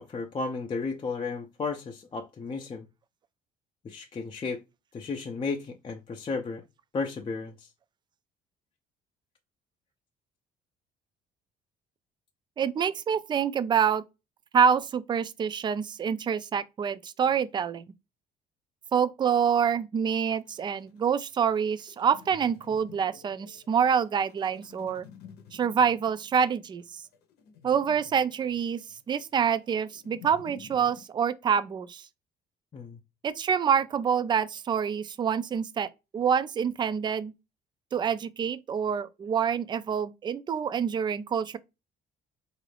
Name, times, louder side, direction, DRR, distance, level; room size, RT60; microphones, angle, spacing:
voice 1, 0.0-2.9 3.8-4.6 4.9-6.6 6.9-7.7 32.7-33.0, left 4 dB, 30° left, 0.5 m, -33 dB
voice 2, 12.6-14.0 14.5-17.8 18.9-25.1 25.5-26.8 27.6-28.8 29.1-32.0 33.2-37.3 37.9-41.6, right 7 dB, 25° right, 0.3 m, -26 dB
sound 1, 20.4-31.0, left 8 dB, 75° left, 0.8 m, -52 dB
3.8 x 2.5 x 3.2 m
cardioid pair, 110°, 17 cm